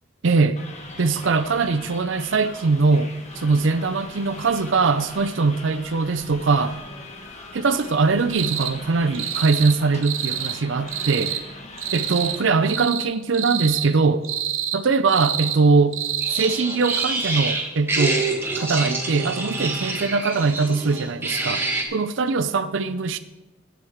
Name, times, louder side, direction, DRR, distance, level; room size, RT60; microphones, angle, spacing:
voice 1, 0.2-0.6 1.0-6.8 7.5-11.4 11.9-14.3 14.7-16.0 16.3-18.3 18.6-21.6 21.9-23.2, right 4 dB, 65° right, 0.5 m, -21 dB
sound 1, 0.5-12.7, left 2 dB, 35° left, 1.4 m, -41 dB
sound 2, 8.4-8.7 9.1-9.8 10.0-10.6 10.9-11.4 11.8-12.4 12.6-13.1 13.3-13.9 14.2-14.8 15.1-15.6 15.9-16.5 16.8-17.1, right 10 dB, 85° right, 1.2 m, -27 dB
sound 3, 16.2-21.8, right 2 dB, 10° right, 1.4 m, -26 dB
8.1 x 7.9 x 7.2 m
head